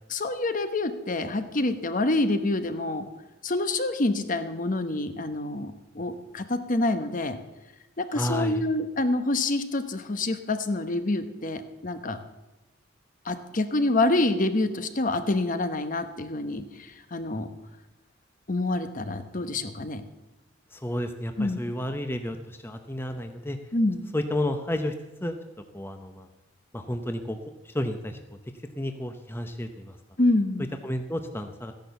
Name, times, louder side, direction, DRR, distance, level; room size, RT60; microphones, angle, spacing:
voice 1, 0.1-3.1 3.4-7.4 8.0-12.2 13.2-17.5 18.5-20.0 21.4-21.6 23.7-24.0 30.2-30.7, left 2 dB, 45° left, 9 dB, 1.0 m, -27 dB
voice 2, 8.1-8.6 20.7-23.6 24.1-24.9 25.2-25.4 25.7-26.3 26.7-27.4 27.7-28.2 28.8-29.9 30.8-31.7, left 1 dB, 10° left, 6 dB, 0.7 m, -31 dB
14.5 x 10.5 x 6.9 m, 1.1 s
head